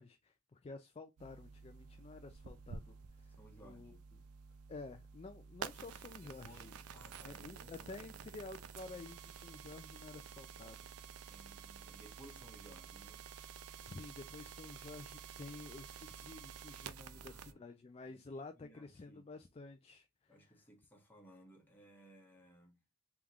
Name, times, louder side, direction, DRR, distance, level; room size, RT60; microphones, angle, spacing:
voice 1, 0.0-4.0 4.7-6.7 7.2-11.3 13.8-20.6, left 3 dB, 25° left, 0.3 m, -51 dB
sound 1, 1.2-17.5, right 6 dB, 80° right, 0.5 m, -51 dB
voice 2, 3.3-4.0 6.2-8.3 11.3-13.3 17.1-17.6 18.0-19.3 20.3-22.8, right 1 dB, 10° left, 1.4 m, -60 dB
3.6 x 3.6 x 2.9 m
head